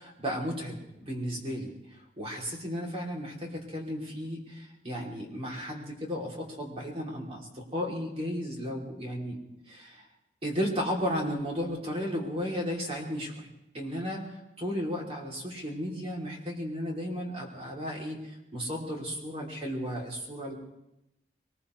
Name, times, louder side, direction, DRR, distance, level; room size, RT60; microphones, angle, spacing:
voice 1, 0.0-1.7 2.2-9.4 9.7-10.1 10.4-13.5 13.7-14.3 14.6-20.5, equal, 35° right, -1 dB, 3.1 m, -34 dB
22.0 x 20.0 x 3.2 m, 0.88 s
head